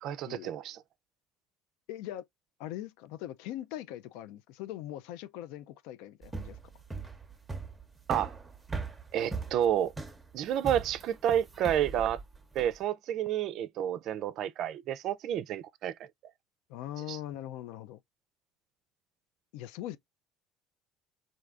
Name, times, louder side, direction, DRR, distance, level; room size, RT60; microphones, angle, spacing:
voice 1, 0.0-0.8 8.1-8.3 9.1-9.9 10.3-12.2 12.5-15.9 17.1-17.2, right 10 dB, 60° right, 0.3 m, -30 dB
voice 2, 1.9-2.2 2.6-6.6 16.7-18.0 19.5-20.0, left 13 dB, 80° left, 0.3 m, -41 dB
sound 1, 6.2-12.8, right 4 dB, 15° right, 0.7 m, -39 dB
3.2 x 2.6 x 2.4 m
supercardioid pair, 105°, 0 cm